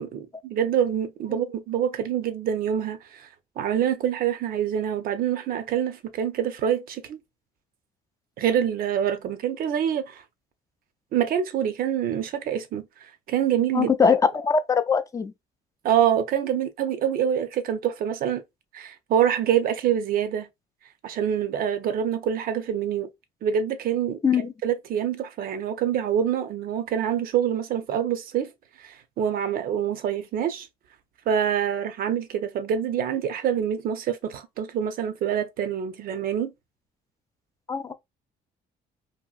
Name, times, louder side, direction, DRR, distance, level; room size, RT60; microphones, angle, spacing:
voice 1, 0.0-3.3 3.6-7.2 8.4-10.2 11.1-13.9 15.8-18.4 18.7-20.5 21.0-23.1 23.4-24.2 24.6-28.5 28.8-30.7 31.3-36.5, right 9 dB, 60° right, 0.6 m, -26 dB
voice 2, 13.7-15.3 24.2-24.5 37.7-37.9, left 6 dB, 20° left, 0.4 m, -22 dB
2.8 x 2.6 x 2.3 m
cardioid pair, 110°, 17 cm